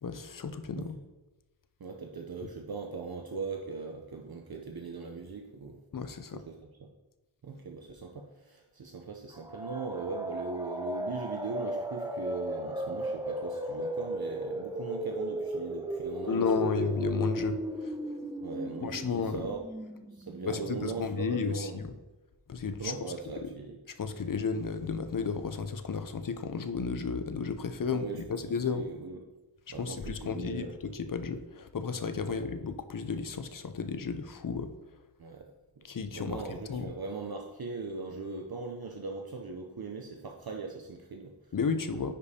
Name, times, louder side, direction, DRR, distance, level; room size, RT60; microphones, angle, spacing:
voice 1, 0.0-1.0 5.9-6.4 16.3-18.0 18.8-19.4 20.4-21.9 22.5-22.9 23.3-23.5 24.0-28.9 29.8-34.7 35.8-36.9 41.5-42.1, left 5 dB, 45° left, 10 dB, 0.5 m, -33 dB
voice 2, 1.8-5.8 6.3-6.9 7.4-16.9 18.4-19.6 20.1-21.8 22.8-23.8 27.9-28.4 28.7-29.2 29.7-30.7 32.2-32.4 35.2-35.8 36.1-41.5 41.9-42.1, right 4 dB, 50° right, 2 dB, 0.6 m, -40 dB
sound 1, 9.3-21.0, right 1 dB, 10° right, 0.6 m, -36 dB
9.7 x 5.1 x 2.8 m, 1.1 s
wide cardioid pair, 75°, 47 cm